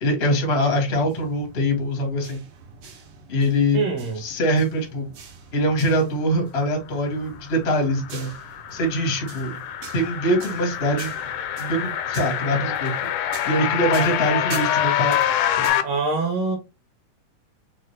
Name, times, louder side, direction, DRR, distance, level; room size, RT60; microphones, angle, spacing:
voice 1, 0.0-2.4 3.3-3.8 4.2-5.1 5.5-8.3 8.7-9.6 9.9-11.1 11.6-12.9 13.4-15.2 15.6-15.8, equal, 70° left, 0.5 m, -23 dB
sound 1, 0.7-15.7, right 5 dB, 90° right, 3.0 m, -44 dB
voice 2, 3.7-4.2 15.8-16.6, right 4 dB, 65° right, 2.1 m, -24 dB
sound 2, 7.5-15.8, left 11 dB, 90° left, 2.0 m, -26 dB
6.0 x 2.4 x 3.1 m
omnidirectional pair, 3.3 m